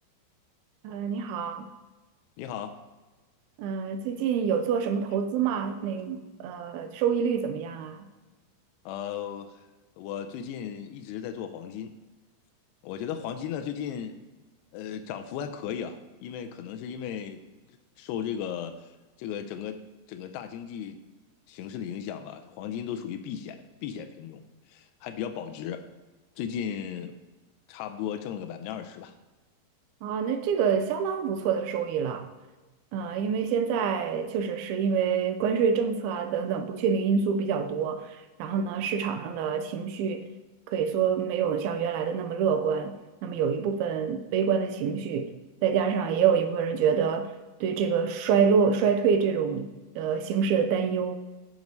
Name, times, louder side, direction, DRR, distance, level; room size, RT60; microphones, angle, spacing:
voice 1, 0.8-1.7 3.6-8.1 30.0-32.3 32.9-40.3 40.7-43.0 43.2-45.3 45.6-47.3 47.6-51.2, right 6 dB, 80° right, 8 dB, 2.3 m, -26 dB
voice 2, 2.4-2.7 8.9-9.6 10.0-11.9 12.8-14.2 14.7-17.4 17.7-18.9 19.2-19.8 20.1-21.0 21.5-23.6 23.8-24.4 24.7-25.8 26.4-27.1 27.7-29.1, left 8 dB, 85° left, 7 dB, 2.7 m, -36 dB
15.5 x 5.4 x 3.1 m, 1.2 s
omnidirectional pair, 4.7 m